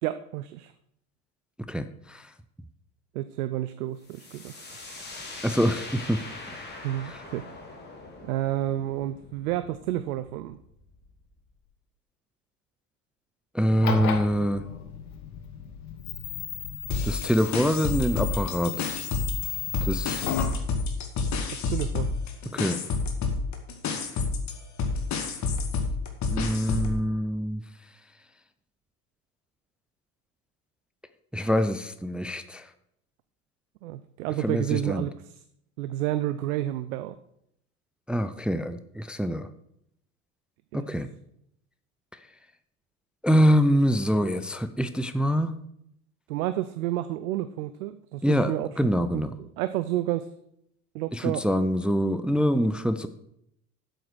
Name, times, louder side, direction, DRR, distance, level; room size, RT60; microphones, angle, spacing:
voice 1, 0.0-0.7 3.1-4.8 6.8-7.5 8.2-10.6 21.5-22.1 33.8-35.4 35.8-37.2 40.7-40.9 46.3-48.7 49.4-50.3 50.9-51.4, right 14 dB, 70° right, 12 dB, 0.7 m, -30 dB
voice 2, 1.7-2.3 5.4-6.2 6.5-6.8 13.5-14.6 17.0-18.9 19.8-20.2 22.5-22.8 26.3-27.6 31.3-32.7 34.4-35.1 38.1-39.5 40.7-41.1 43.2-45.6 48.2-49.3 51.1-53.1, equal, ahead, 11 dB, 0.4 m, -25 dB
sound 1, 4.0-11.6, left 2 dB, 20° left, 3.3 m, -43 dB
sound 2, 13.7-20.6, left 7 dB, 70° left, 1.4 m, -34 dB
sound 3, 16.9-19.5 19.7-27.0, left 4 dB, 40° left, 1.9 m, -29 dB
7.9 x 7.9 x 6.3 m, 0.74 s
hypercardioid pair, 80°, 45 cm